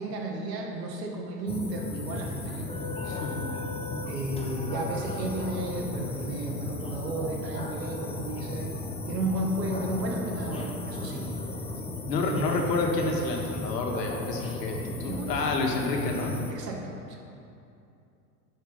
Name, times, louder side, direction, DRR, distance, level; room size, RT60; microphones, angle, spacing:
voice 1, 0.0-2.7 4.0-8.7 9.1-11.4 12.2-12.6 15.0-15.9 16.5-17.2, right 2 dB, 80° right, 0 dB, 1.9 m, -33 dB
sound 1, 1.5-16.5, left 2 dB, 10° left, 0.8 m, -35 dB
voice 2, 3.0-3.4 12.1-16.3, left 3 dB, 80° left, 1 dB, 1.7 m, -29 dB
11.0 x 5.3 x 5.6 m, 2.6 s
hypercardioid pair, 100°, 48 cm